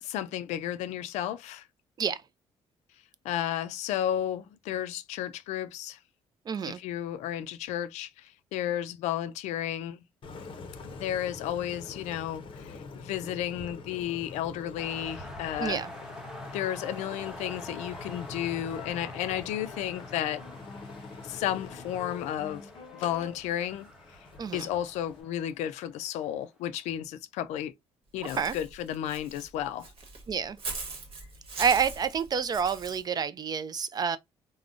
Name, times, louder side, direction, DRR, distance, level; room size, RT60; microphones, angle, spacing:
voice 1, 0.0-1.7 3.2-6.0 6.6-10.0 10.8-15.8 16.5-20.4 21.2-22.7 22.9-23.9 24.5-27.7 28.1-29.9, left 11 dB, 90° left, 0.4 m, -33 dB
voice 2, 6.5-6.8 15.6-15.9 24.4-24.7 28.3-28.6 30.3-30.6 31.6-34.2, right 6 dB, 35° right, 0.4 m, -28 dB
Engine, 10.2-25.2, left 4 dB, 50° left, 0.6 m, -44 dB
sound 1, 14.8-26.5, left 1 dB, 5° right, 0.8 m, -47 dB
Walk footsteps / Bird, 28.3-33.0, right 3 dB, 55° right, 1.1 m, -40 dB
3.5 x 2.1 x 2.4 m
cardioid pair, 95°, 11 cm